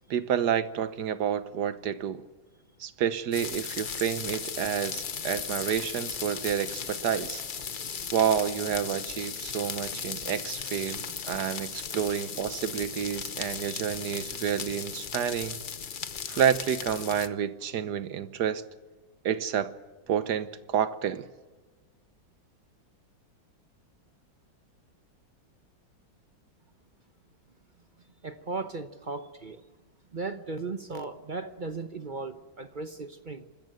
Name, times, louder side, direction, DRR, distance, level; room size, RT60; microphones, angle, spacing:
voice 1, 0.1-2.2 2.8-7.4 8.1-15.6 16.3-18.6 19.2-19.7 20.1-21.3, right 9 dB, 60° right, 1.4 m, -29 dB
sound 1, 3.3-17.3, left 6 dB, 70° left, 0.4 m, -36 dB
voice 2, 28.2-29.6 30.1-33.5, right 3 dB, 40° right, 0.7 m, -37 dB
25.0 x 14.0 x 9.3 m
omnidirectional pair, 2.1 m